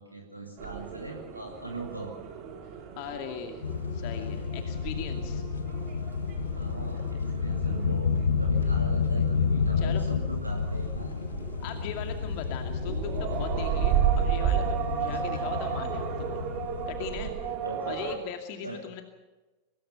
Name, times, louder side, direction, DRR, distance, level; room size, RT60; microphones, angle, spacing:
voice 1, 0.0-2.2 6.5-8.1 8.4-11.1 15.0-15.4 17.4-18.0 18.6-18.9, right 2 dB, 85° right, 1 dB, 2.5 m, -40 dB
sound 1, 0.6-18.2, right 9 dB, 40° right, 3.5 m, -34 dB
voice 2, 3.0-3.7 3.9-5.4 9.8-10.0 11.6-16.4 16.9-17.3 17.9-19.0, left 8 dB, 45° left, 5 dB, 2.4 m, -39 dB
sound 2, 3.6-17.5, left 5 dB, 70° left, 1.3 m, -30 dB
24.5 x 20.0 x 5.7 m, 1.2 s
figure-of-eight pair, 90°, 0 cm